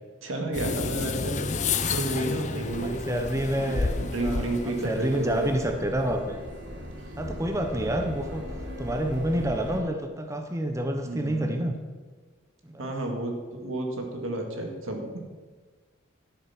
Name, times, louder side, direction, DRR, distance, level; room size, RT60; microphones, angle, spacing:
voice 1, 0.2-1.5 1.9-3.2 3.6-5.5 11.0-11.7 12.8-15.2, right 1 dB, 85° right, 2 dB, 2.0 m, -31 dB
sound 1, 0.5-5.7, left 4 dB, 35° left, 0.5 m, -31 dB
sound 2, 2.6-9.8, equal, 65° right, 1.9 m, -39 dB
voice 2, 2.8-3.9 4.2-6.4 7.2-8.5 8.8-11.8 12.6-12.9, right 1 dB, 15° right, 5 dB, 0.7 m, -28 dB
12.0 x 7.3 x 5.8 m, 1.4 s
head